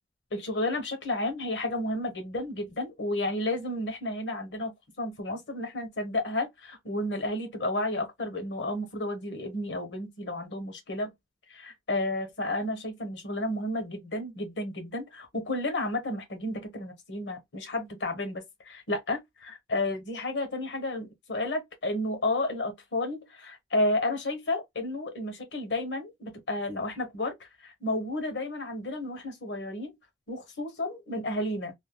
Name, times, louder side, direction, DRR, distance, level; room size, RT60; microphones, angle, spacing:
voice 1, 0.3-11.1 11.5-30.0 30.3-31.7, left 1 dB, 85° left, 1.0 m, -32 dB
3.5 x 2.2 x 2.2 m
head